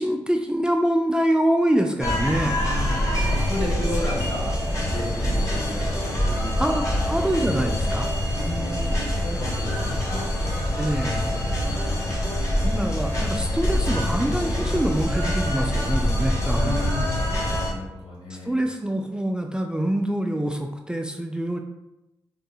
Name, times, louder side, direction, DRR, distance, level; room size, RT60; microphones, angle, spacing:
voice 1, 0.0-2.6 6.6-8.1 10.8-11.2 12.6-16.8 18.3-21.6, right 1 dB, 10° right, 4 dB, 0.4 m, -25 dB
sound 1, 2.0-17.7, left 1 dB, 35° left, 1.1 m, -25 dB
voice 2, 2.6-4.5 4.9-5.9 6.3-7.1 8.3-9.0 9.2-10.7 11.1-11.9 16.5-17.3 17.7-18.5, left 1 dB, 65° left, -5 dB, 1.5 m, -34 dB
3.5 x 2.7 x 2.3 m, 0.93 s
supercardioid pair, 40°, 10 cm